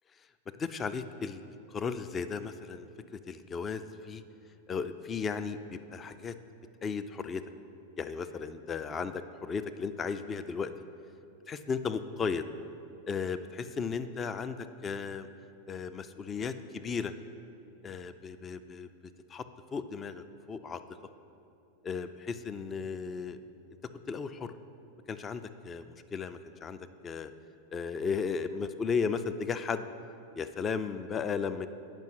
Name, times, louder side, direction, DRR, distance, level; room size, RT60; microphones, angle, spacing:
voice 1, 0.6-1.4 1.7-2.9 3.1-4.2 4.7-6.3 6.8-7.4 8.0-10.7 11.5-12.4 13.1-14.6 14.8-15.3 15.7-17.1 17.8-18.9 19.3-19.4 19.7-20.8 21.8-23.4 24.1-24.5 25.1-27.3 27.7-29.8 30.3-31.7, left 5 dB, 20° left, 11 dB, 0.3 m, -35 dB
8.9 x 5.6 x 5.8 m, 2.8 s
figure-of-eight pair, 90°, 0 cm